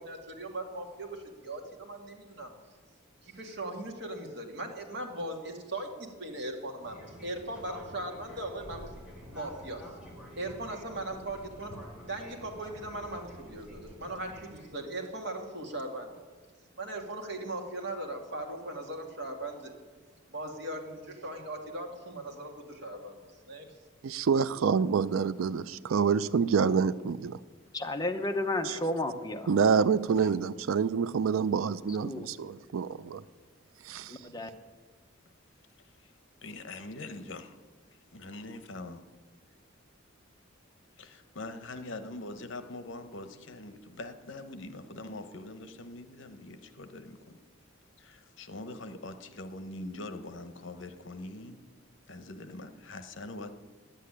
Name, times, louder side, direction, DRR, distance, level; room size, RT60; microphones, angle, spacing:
voice 1, 0.0-2.5 3.2-8.9 9.3-9.8 10.4-11.8 12.1-16.1 16.8-19.7 20.3-23.6, right 1 dB, 55° right, 2 dB, 2.0 m, -39 dB
Fixed-wing aircraft airplane, 6.8-14.7, equal, 5° right, 3.2 m, -48 dB
voice 2, 24.0-27.4 28.6-28.8 29.5-33.2, right 6 dB, 85° right, 17 dB, 0.4 m, -27 dB
voice 3, 27.7-29.4 32.0-32.3 34.3-34.5, left 2 dB, 20° left, 6 dB, 0.8 m, -31 dB
voice 4, 36.4-37.6 38.1-39.0 41.0-47.4 48.0-51.6 52.1-53.5, left 2 dB, 65° left, 10 dB, 1.0 m, -43 dB
10.5 x 8.4 x 9.8 m, 1.4 s
head